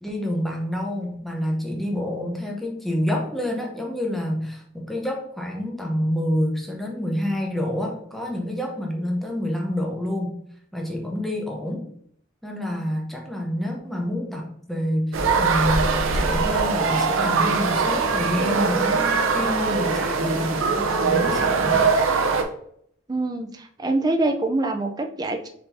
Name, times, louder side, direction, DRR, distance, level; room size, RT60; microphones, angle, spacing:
voice 1, 0.0-10.4 10.7-11.9 12.4-20.6 21.0-21.9, equal, ahead, 0 dB, 0.7 m, -28 dB
sound 1, 15.1-22.4, right 4 dB, 80° right, 0.6 m, -22 dB
voice 2, 23.1-25.5, right 2 dB, 20° right, 5 dB, 0.3 m, -25 dB
4.4 x 4.0 x 2.6 m, 0.66 s
head